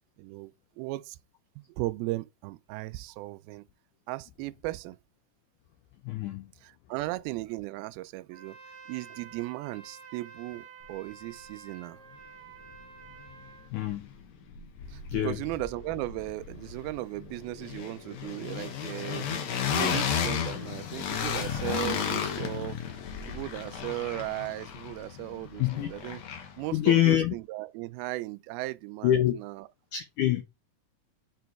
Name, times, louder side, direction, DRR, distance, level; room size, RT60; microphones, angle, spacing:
voice 1, 0.2-1.2 1.6-3.6 4.1-5.0 6.6-8.6 8.9-12.0 14.9-22.8 23.3-26.2 26.6-29.7, right 19 dB, 85° right, 2.4 m, -37 dB
voice 2, 6.0-6.5 13.7-14.1 15.1-15.4 25.6-25.9 26.7-27.4 29.0-29.3 29.9-30.4, left 12 dB, 80° left, 1.9 m, -25 dB
Trumpet, 8.3-13.7, right 6 dB, 65° right, 1.8 m, -50 dB
sound 1, 12.7-12.8 13.1-14.2 14.5-26.7, left 7 dB, 60° left, 2.2 m, -34 dB
6.8 x 4.6 x 4.6 m
omnidirectional pair, 4.4 m